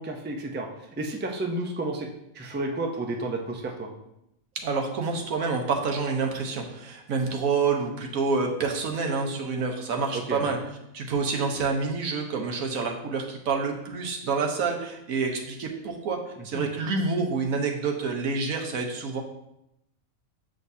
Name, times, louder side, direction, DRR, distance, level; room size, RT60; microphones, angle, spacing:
voice 1, 0.0-2.1 2.3-3.9 10.1-10.5 16.4-16.7, right 2 dB, 15° right, 2 dB, 0.3 m, -32 dB
voice 2, 4.5-10.6 10.9-16.2 16.4-19.2, right 4 dB, 90° right, 2 dB, 1.4 m, -28 dB
7.3 x 6.5 x 2.7 m, 0.84 s
omnidirectional pair, 1.4 m